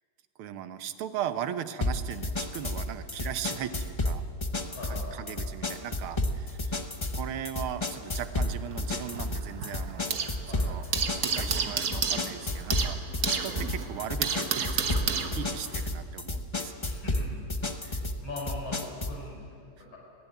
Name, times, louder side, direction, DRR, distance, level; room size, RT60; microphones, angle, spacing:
voice 1, 0.4-4.2 4.6-6.8 7.1-10.2 10.5-10.8 11.2-16.9 17.8-18.1, right 10 dB, 90° right, 10 dB, 1.8 m, -38 dB
sound 1, 1.8-19.2, left 2 dB, 45° left, 0.3 m, -32 dB
voice 2, 4.8-5.4 10.5-10.7 16.8-17.4 18.2-20.0, left 2 dB, 70° left, -2 dB, 5.6 m, -41 dB
sound 2, 8.3-10.4 10.7-15.8, right 6 dB, 50° right, 1.5 m, -31 dB
20.5 x 15.5 x 9.3 m, 2.4 s
omnidirectional pair, 2.3 m